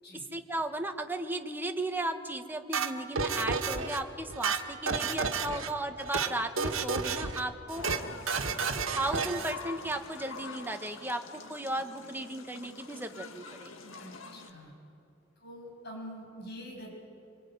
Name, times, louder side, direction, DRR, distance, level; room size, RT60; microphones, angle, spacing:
voice 1, 0.3-7.8 8.9-13.7, right 1 dB, 10° right, 5 dB, 1.3 m, -35 dB
sound 1, 2.7-4.0 4.3-5.7 6.0-6.3 6.6-7.4 7.7-8.0 8.3-9.5, right 5 dB, 85° right, 1.6 m, -31 dB
sound 2, 7.7-14.5, left 4 dB, 85° left, 2.0 m, -46 dB
voice 2, 14.0-14.7 15.4-17.0, equal, 55° left, 0 dB, 7.8 m, -45 dB
25.5 x 23.5 x 9.6 m, 2.7 s
head